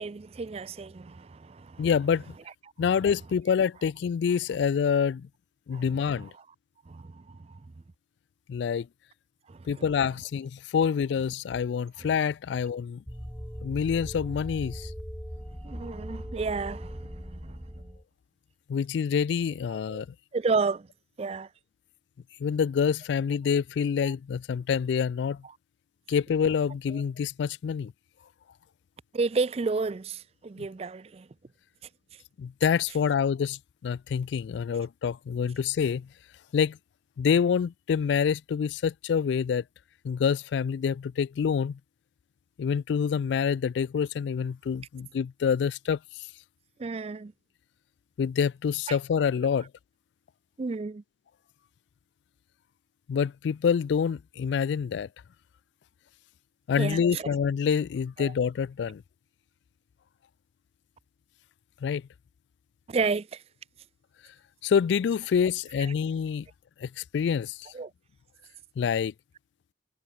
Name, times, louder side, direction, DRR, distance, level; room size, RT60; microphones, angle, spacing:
voice 1, 0.0-1.9 5.7-5.8 6.2-6.3 6.9-7.6 9.5-9.9 12.0-12.1 15.6-17.9 19.7-20.0 20.3-20.9 21.2-21.5 24.0-24.1 29.1-31.3 46.8-47.3 48.9-49.0 50.6-51.0 56.8-57.3 58.2-58.3 62.9-63.4 65.8-65.9 67.7-67.9, right 4 dB, 35° right, 0.4 m, -32 dB
voice 2, 1.8-2.3 2.8-5.3 5.7-6.3 8.5-8.9 9.7-13.0 13.6-14.9 18.7-20.1 22.4-25.4 26.1-27.9 30.6-30.7 32.4-36.1 36.5-36.8 37.2-39.6 40.0-41.8 42.6-46.3 48.2-49.7 53.1-55.1 56.7-59.0 61.8-62.0 64.6-66.5 66.8-67.6 68.8-69.1, left 7 dB, 75° left, 0.3 m, -27 dB
sound 1, 13.1-18.0, equal, 5° left, 0.9 m, -40 dB
head